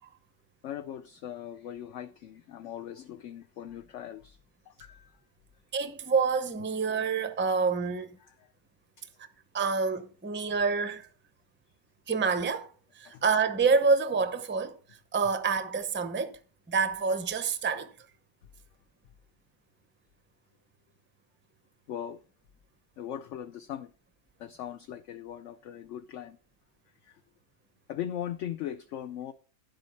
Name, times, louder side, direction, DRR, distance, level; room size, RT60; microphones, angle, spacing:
voice 1, 0.6-4.4 4.7-5.2 8.2-8.5 9.0-9.1 13.0-13.2 21.9-22.2 23.0-23.9 24.4-26.4 27.0-27.2 27.9-29.3, left 10 dB, 65° left, 0.8 m, -39 dB
voice 2, 5.7-8.2 9.5-11.1 12.1-12.7 13.0-14.8 15.1-16.4 16.7-17.9, right 5 dB, 15° right, 0.4 m, -27 dB
10.5 x 7.8 x 4.2 m
omnidirectional pair, 1.6 m